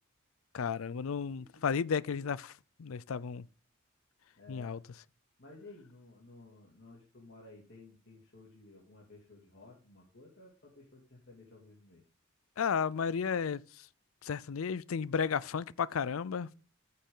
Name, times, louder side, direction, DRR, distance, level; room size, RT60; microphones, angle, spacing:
voice 1, 0.5-2.5 2.8-3.5 4.5-4.8 12.6-13.6 14.2-16.5, left 6 dB, 85° left, 0.5 m, -33 dB
voice 2, 1.1-2.3 4.4-4.8 5.4-12.0, left 2 dB, 55° left, 2.5 m, -55 dB
14.0 x 6.8 x 3.8 m
head